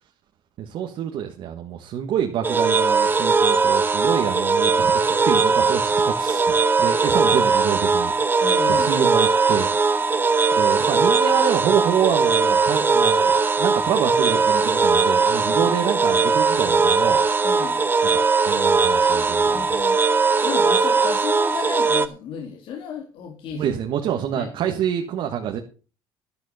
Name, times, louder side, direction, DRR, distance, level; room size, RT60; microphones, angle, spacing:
voice 1, 0.6-6.4 6.8-8.2 8.7-9.7 10.5-17.2 18.1-19.9 23.5-25.6, right 9 dB, 60° right, 4 dB, 1.6 m, -27 dB
sound 1, 2.4-22.1, right 4 dB, 20° right, 1.0 m, -19 dB
voice 2, 8.4-9.0 15.4-15.7 17.4-17.8 19.5-20.0 20.4-23.8 24.3-24.5, left 7 dB, 60° left, 2 dB, 2.2 m, -33 dB
13.0 x 10.5 x 4.3 m, 0.36 s
supercardioid pair, 105°, 10 cm